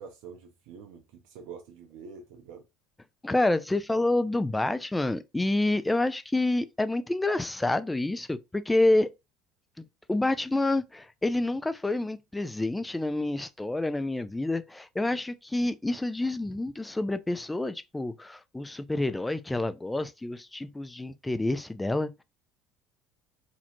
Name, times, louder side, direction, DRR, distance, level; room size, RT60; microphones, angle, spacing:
voice 1, 0.0-2.6, right 6 dB, 65° right, 0.4 m, -46 dB
voice 2, 3.2-9.1 9.8-22.2, left 2 dB, 10° left, 0.3 m, -28 dB
2.5 x 2.0 x 2.7 m
figure-of-eight pair, 65°, 0 cm